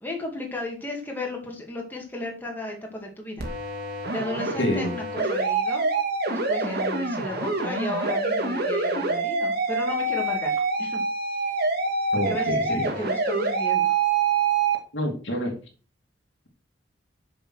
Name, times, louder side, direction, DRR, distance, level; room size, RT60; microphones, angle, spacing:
voice 1, 0.0-3.5 4.1-5.9 6.3-11.0 11.4-11.5 12.3-14.0, left 1 dB, 10° left, 2.2 m, -34 dB
sound 1, 3.4-14.8, right 4 dB, 55° right, 2.6 m, -26 dB
voice 2, 4.6-4.9 12.1-12.9 14.9-15.5, left 1 dB, 70° left, 2.9 m, -27 dB
7.1 x 6.9 x 6.3 m
head